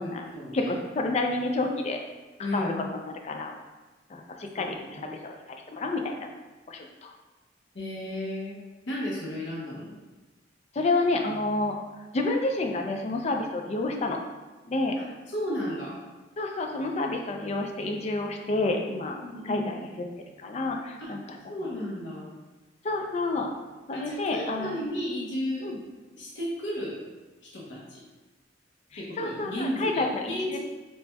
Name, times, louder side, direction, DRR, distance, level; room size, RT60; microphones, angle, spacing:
voice 1, 0.0-0.8 2.4-2.8 4.5-5.1 7.7-8.6 8.9-9.9 15.3-16.0 19.2-19.7 21.0-21.1 21.5-22.3 23.9-25.7 26.1-27.0 27.5-28.0 29.0-30.6, left 1 dB, 80° left, -5 dB, 0.9 m, -33 dB
voice 2, 0.5-2.0 2.5-3.5 4.1-6.3 6.7-7.1 10.7-11.8 12.1-14.2 14.7-14.9 16.4-19.2 19.4-20.1 20.4-21.4 22.8-23.5 23.9-24.8 25.6-25.8 28.9-30.6, left 2 dB, 35° left, 3 dB, 0.4 m, -29 dB
4.0 x 3.3 x 2.2 m, 1.2 s
head